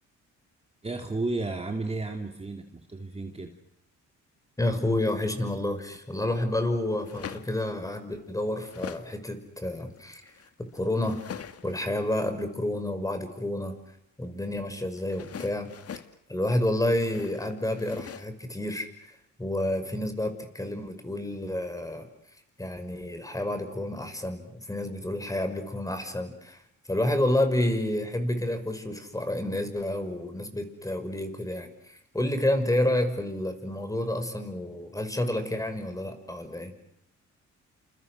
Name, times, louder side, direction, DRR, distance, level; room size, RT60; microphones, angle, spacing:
voice 1, 0.8-3.5, right 3 dB, 20° right, 3 dB, 3.0 m, -33 dB
voice 2, 4.6-10.3 10.6-13.8 14.2-15.8 16.3-22.1 22.6-26.6 26.9-36.7, left 1 dB, 10° left, 8 dB, 5.8 m, -29 dB
sound 1, 5.5-6.0 6.9-7.7 8.2-9.2 9.6-11.9 14.9-16.2 16.8-18.3, left 8 dB, 50° left, 2.0 m, -43 dB
29.5 x 28.0 x 6.4 m, 0.75 s
cardioid pair, 90°, 30 cm